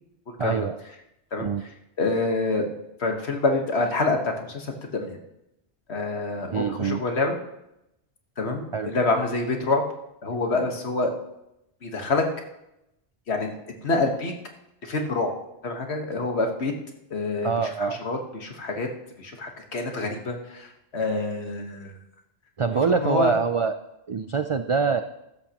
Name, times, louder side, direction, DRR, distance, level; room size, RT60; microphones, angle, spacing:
voice 1, 0.4-0.8 1.4-1.6 6.5-7.0 8.7-8.9 17.4-18.0 22.6-23.8 24.1-25.0, right 5 dB, 55° right, 8 dB, 0.3 m, -24 dB
voice 2, 1.3-1.7 2.0-2.6 3.0-5.2 5.9-7.3 8.4-9.9 10.2-11.1 11.8-12.2 13.3-13.5 13.8-14.3 14.8-15.3 15.6-16.7 17.1-18.9 19.2-21.9 22.8-23.3, left 3 dB, 75° left, 3 dB, 1.7 m, -27 dB
15.0 x 12.5 x 3.0 m, 0.86 s
omnidirectional pair, 1.1 m